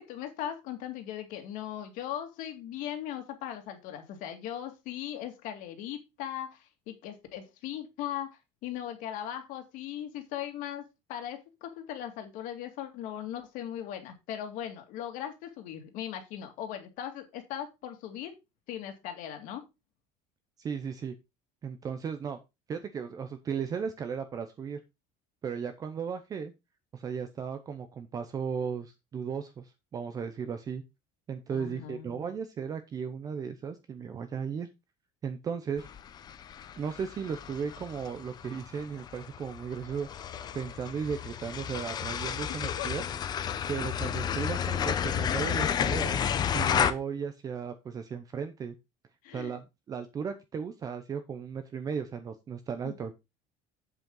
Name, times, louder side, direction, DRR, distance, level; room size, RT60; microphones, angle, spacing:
voice 1, 0.0-8.3 8.6-18.3 18.7-19.6 31.5-32.3 42.5-42.9 49.2-49.5 52.8-52.9, left 10 dB, 55° left, 5 dB, 2.3 m, -39 dB
voice 2, 20.6-21.1 21.6-22.4 22.7-24.8 25.4-26.5 26.9-30.8 31.3-34.7 35.2-35.9 36.8-43.0 43.7-46.2 46.5-48.7 49.3-53.1, right 6 dB, 25° right, 8 dB, 0.7 m, -36 dB
sound 1, 35.8-46.9, left 8 dB, 25° left, 0.7 m, -32 dB
8.0 x 7.4 x 3.8 m, 0.24 s
cardioid pair, 175°, 16 cm